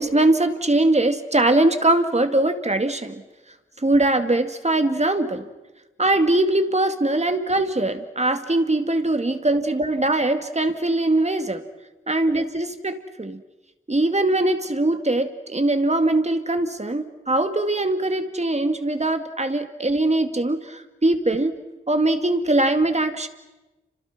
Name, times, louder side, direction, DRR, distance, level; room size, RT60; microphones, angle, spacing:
voice 1, 0.0-3.2 3.8-5.5 6.0-11.6 12.1-13.4 13.9-21.6 21.9-23.3, right 2 dB, 30° right, 8 dB, 2.2 m, -21 dB
29.5 x 26.5 x 6.1 m, 1.1 s
cardioid pair, 50°, 21 cm